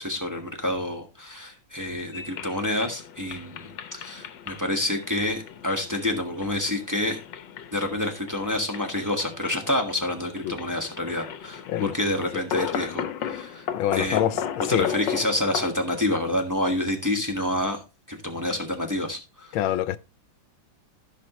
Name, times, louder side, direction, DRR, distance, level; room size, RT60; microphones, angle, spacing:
voice 1, 0.0-7.2 7.7-14.4 14.7-17.8 18.1-19.5, left 1 dB, 10° right, 1.5 m, -28 dB
sound 1, 2.1-15.6, left 8 dB, 70° left, 1.5 m, -35 dB
voice 2, 13.7-14.4 14.7-14.9 19.5-20.0, left 11 dB, 85° left, 1.4 m, -25 dB
15.0 x 5.9 x 3.0 m
omnidirectional pair, 2.2 m